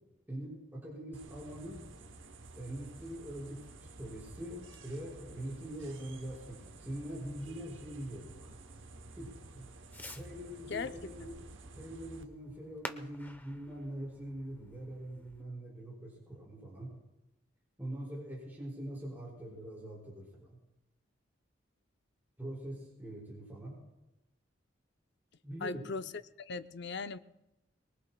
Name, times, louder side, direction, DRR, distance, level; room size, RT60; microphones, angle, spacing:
voice 1, 0.3-1.8 2.5-8.5 9.2-9.7 10.1-11.3 11.7-16.9 17.8-20.6 22.4-23.8 25.4-25.8, right 1 dB, 10° right, 5.5 m, -43 dB
sound 1, 1.1-12.2, right 3 dB, 70° right, 0.9 m, -52 dB
Fireworks, 4.0-15.4, left 1 dB, 10° left, 0.8 m, -53 dB
voice 2, 10.7-11.3 25.6-26.1 26.4-27.2, left 4 dB, 60° left, 0.6 m, -39 dB
24.5 x 22.5 x 2.3 m
head